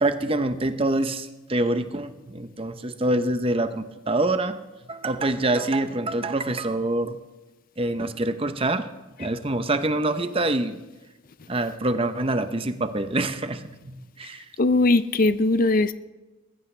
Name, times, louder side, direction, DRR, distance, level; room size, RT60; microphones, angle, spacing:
voice 1, 0.0-4.6 4.9-7.2 7.8-8.9 9.2-10.8 11.5-14.5, right 2 dB, 25° right, 10 dB, 0.8 m, -25 dB
voice 2, 14.6-15.9, left 2 dB, 40° left, 14 dB, 0.5 m, -20 dB
20.5 x 15.5 x 3.3 m, 1.1 s
head